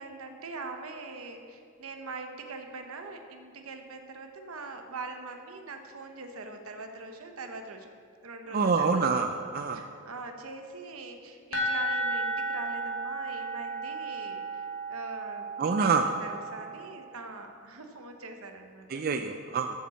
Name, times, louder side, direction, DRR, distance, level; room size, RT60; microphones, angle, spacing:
voice 1, 0.0-7.9 8.2-9.0 9.7-18.9, right 3 dB, 80° right, 5 dB, 1.0 m, -42 dB
voice 2, 8.5-9.8 15.6-16.1 18.9-19.8, right 5 dB, 40° right, 6 dB, 0.3 m, -26 dB
sound 1, 11.5-17.1, right 1 dB, 70° left, 1.4 m, -34 dB
7.3 x 7.1 x 7.1 m, 2.2 s
head